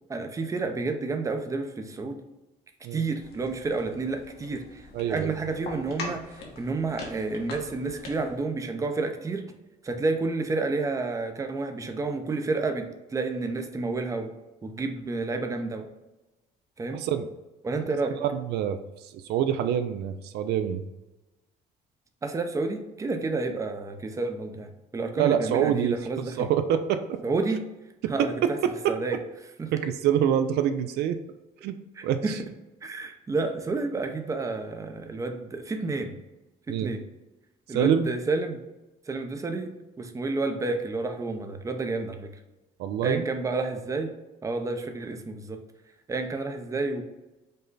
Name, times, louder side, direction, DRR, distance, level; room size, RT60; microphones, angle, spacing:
voice 1, 0.1-2.2 2.9-9.5 9.8-14.3 14.6-15.9 16.8-17.0 17.6-18.2 22.2-26.5 27.2-27.7 28.1-28.6 28.9-29.2 29.6-29.7 32.0-32.4 32.8-36.2 36.7-37.0 37.7-38.6 39.1-42.3 43.0-44.1 44.4-45.6 46.1-47.0, right 3 dB, 20° right, 5 dB, 0.5 m, -30 dB
sound 1, 3.2-8.4, left 2 dB, 80° left, 1.1 m, -42 dB
voice 2, 4.9-5.3 16.9-17.3 18.1-20.8 25.2-27.2 28.0-28.1 28.8-28.9 29.7-31.2 31.6-31.8 32.0-32.4 36.7-36.9 37.7-38.1 42.8-43.2, right 9 dB, 75° right, 9 dB, 0.4 m, -26 dB
5.3 x 2.2 x 3.9 m, 1.0 s
cardioid pair, 110°, 17 cm